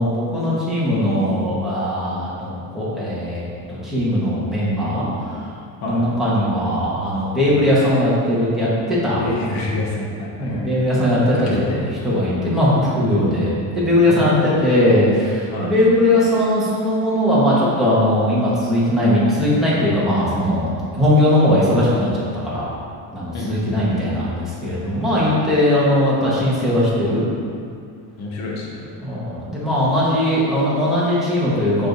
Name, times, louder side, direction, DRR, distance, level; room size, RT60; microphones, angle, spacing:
voice 1, 0.0-5.3 5.9-9.2 10.4-11.5 12.0-22.7 23.1-27.2 29.0-31.9, left 1 dB, ahead, -10 dB, 1.3 m, -19 dB
voice 2, 9.2-10.7 11.3-11.8 14.1-14.6 15.5-15.7 23.3-24.0 25.2-25.4 28.2-28.9, left 2 dB, 40° left, -3 dB, 1.1 m, -27 dB
8.7 x 3.5 x 4.0 m, 2.3 s
cardioid pair, 180°, 44 cm